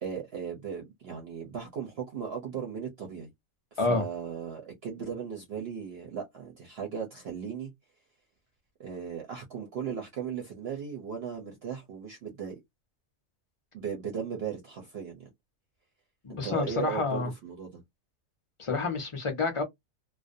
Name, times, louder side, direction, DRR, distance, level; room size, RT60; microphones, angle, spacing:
voice 1, 0.0-3.3 3.7-7.7 8.8-12.6 13.7-15.3 16.3-17.8, right 7 dB, 55° right, 0.8 m, -37 dB
voice 2, 16.2-17.3 18.6-19.6, left 3 dB, 35° left, 0.5 m, -28 dB
2.4 x 2.1 x 2.5 m
omnidirectional pair, 1.4 m